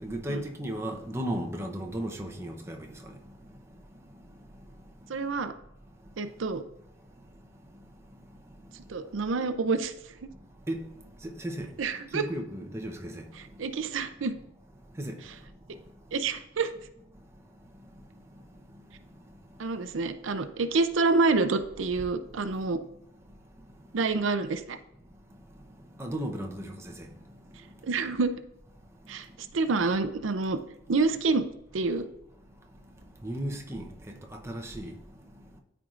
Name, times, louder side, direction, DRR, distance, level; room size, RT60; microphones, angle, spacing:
voice 1, 0.0-2.9 10.7-10.8 11.2-11.7 12.1-13.3 15.0-15.2 26.0-26.9 33.2-33.9 34.4-34.9, right 1 dB, 15° right, 0.7 m, -34 dB
voice 2, 5.1-5.5 6.2-6.6 8.9-9.9 11.8-12.2 13.6-14.3 16.1-16.7 19.6-22.8 23.9-24.8 27.8-28.3 29.1-29.3 29.5-30.6 30.9-31.4 31.7-32.1, right 3 dB, 80° right, 0.5 m, -27 dB
13.0 x 4.6 x 2.5 m
head